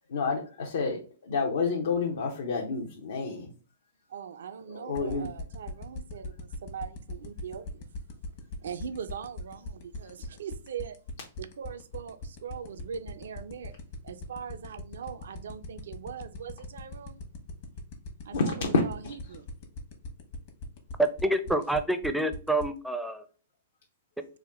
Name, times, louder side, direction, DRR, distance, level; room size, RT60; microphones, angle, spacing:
voice 1, 0.1-3.5 4.7-5.3 18.3-19.1, left 4 dB, 75° left, 0.7 m, -29 dB
voice 2, 4.1-7.9 8.6-11.0 11.4-13.8 14.0-17.2 18.2-19.5, right 7 dB, 75° right, 0.4 m, -41 dB
sound 1, 4.9-22.6, left 4 dB, 55° left, 1.0 m, -39 dB
voice 3, 21.0-23.2, right 1 dB, ahead, 0.4 m, -27 dB
3.5 x 2.3 x 3.4 m
hypercardioid pair, 120°, 0 cm